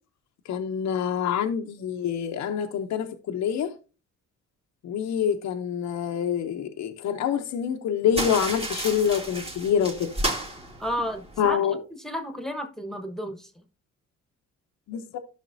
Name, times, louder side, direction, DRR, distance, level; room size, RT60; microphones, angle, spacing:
voice 1, 0.4-3.7 4.8-10.1 11.4-11.8 14.9-15.2, left 8 dB, 65° left, 0.8 m, -26 dB
sound 1, 8.1-11.5, right 1 dB, 20° right, 1.7 m, -32 dB
voice 2, 10.8-11.6 12.0-13.5, equal, ahead, 1.3 m, -32 dB
12.5 x 5.8 x 2.7 m
cardioid pair, 90°, 30 cm